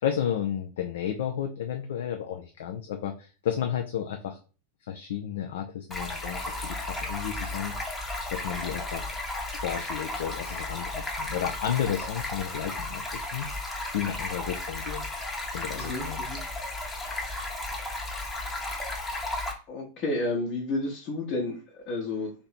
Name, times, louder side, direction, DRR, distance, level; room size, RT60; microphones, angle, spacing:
voice 1, 0.0-4.4 4.9-7.9 8.3-9.1 9.6-13.5 13.9-15.1 15.5-16.2, left 9 dB, 55° left, 5 dB, 0.4 m, -32 dB
Stream, 5.9-19.5, left 2 dB, 15° left, 0.9 m, -34 dB
voice 2, 15.7-16.4 19.7-22.3, left 2 dB, 40° left, -3 dB, 1.0 m, -31 dB
3.2 x 2.8 x 4.1 m, 0.35 s
figure-of-eight pair, 90°, 0 cm